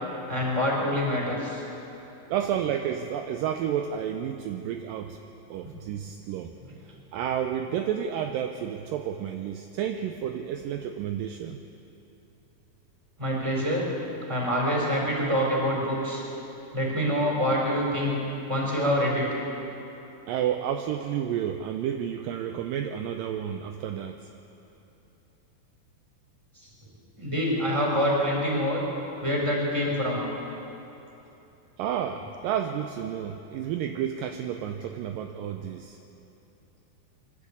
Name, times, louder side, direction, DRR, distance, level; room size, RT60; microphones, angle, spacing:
voice 1, 0.3-1.6 5.6-5.7 6.7-6.8 13.2-13.9 14.2-16.2 16.7-18.1 18.5-19.3 27.2-28.8 29.2-30.3, equal, 10° right, -3 dB, 4.0 m, -26 dB
voice 2, 2.3-5.2 5.5-6.5 7.1-11.6 20.3-24.3 31.8-36.0, right 9 dB, 80° right, 6 dB, 2.1 m, -31 dB
24.5 x 12.0 x 8.6 m, 2.9 s
omnidirectional pair, 4.4 m